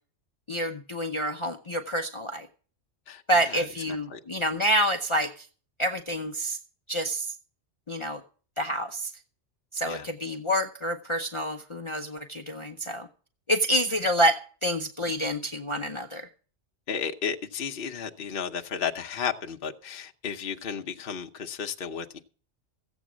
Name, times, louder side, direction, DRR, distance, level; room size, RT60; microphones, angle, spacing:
voice 1, 0.5-2.5 3.3-5.5 5.8-6.6 6.9-7.3 7.9-8.2 8.6-9.1 9.7-13.1 13.5-16.3, equal, 30° left, 0.7 m, -28 dB
voice 2, 3.1-4.2 9.9-10.1 16.9-22.2, left 7 dB, 55° left, 1.1 m, -33 dB
15.0 x 8.2 x 6.1 m
omnidirectional pair, 1.2 m